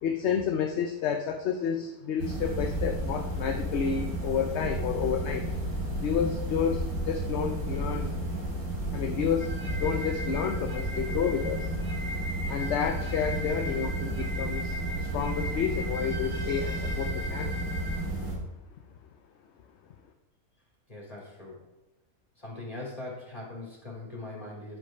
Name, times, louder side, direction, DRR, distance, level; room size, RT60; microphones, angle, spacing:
voice 1, 0.0-5.5 6.0-8.2 8.9-9.5 9.8-11.7 12.5-17.6, left 7 dB, 60° left, 5 dB, 0.8 m, -30 dB
sound 1, 2.2-18.4, right 1 dB, 85° right, 3.0 m, -32 dB
sound 2, 9.4-18.0, equal, 20° right, 1.1 m, -39 dB
voice 2, 20.9-21.6 22.4-24.8, left 2 dB, 25° left, -3 dB, 3.0 m, -41 dB
10.5 x 5.2 x 5.0 m, 1.1 s
omnidirectional pair, 1.5 m